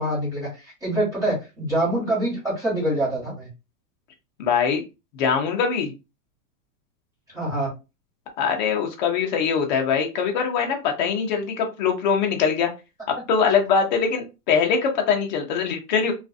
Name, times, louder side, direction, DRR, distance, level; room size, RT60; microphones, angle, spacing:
voice 1, 0.0-3.5 7.3-7.7, right 1 dB, 5° right, -7 dB, 1.2 m, -25 dB
voice 2, 4.4-4.8 5.1-5.9 8.4-12.7 13.1-16.1, left 6 dB, 30° left, 2 dB, 0.4 m, -22 dB
2.5 x 2.3 x 2.4 m, 0.27 s
supercardioid pair, 155°, 49 cm